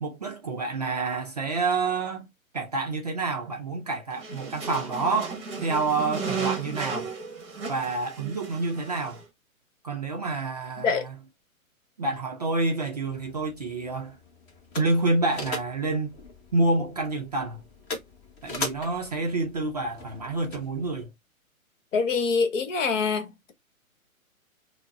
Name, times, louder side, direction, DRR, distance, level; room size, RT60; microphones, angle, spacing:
voice 1, 0.0-2.3 2.5-7.1 7.7-9.2 9.8-11.2 12.0-14.2 14.8-16.2 16.5-17.6 18.4-21.1, right 3 dB, 30° right, 0.4 m, -28 dB
sound 1, 4.1-9.2, right 5 dB, 15° right, 0.9 m, -34 dB
sound 2, 13.0-21.0, left 2 dB, 20° left, 0.8 m, -40 dB
voice 2, 21.9-23.5, left 5 dB, 60° left, 1.1 m, -25 dB
5.6 x 2.0 x 2.4 m
hypercardioid pair, 130°, 43 cm